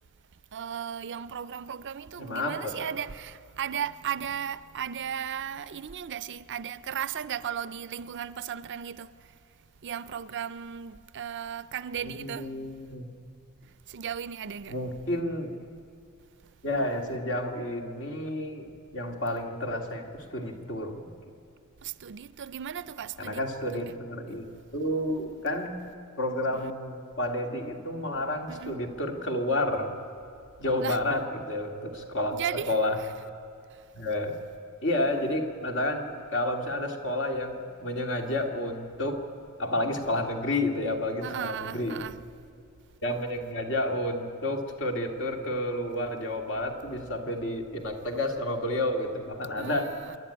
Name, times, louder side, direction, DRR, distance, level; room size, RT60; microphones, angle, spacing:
voice 1, 0.5-9.1 9.8-12.5 13.9-14.8 21.8-23.4 24.3-24.4 26.5-26.7 28.5-28.8 30.8-31.0 32.3-32.7 41.2-42.2 49.5-50.2, right 8 dB, 55° right, 0.5 m, -36 dB
voice 2, 2.2-2.8 12.0-13.1 14.7-15.6 16.6-21.1 23.2-24.5 24.7-25.8 26.2-29.9 30.6-32.3 32.7-33.0 33.9-34.4 34.8-39.3 39.6-42.0 43.0-49.9, left 1 dB, 60° left, 2.3 m, -30 dB
27.0 x 11.5 x 9.8 m
head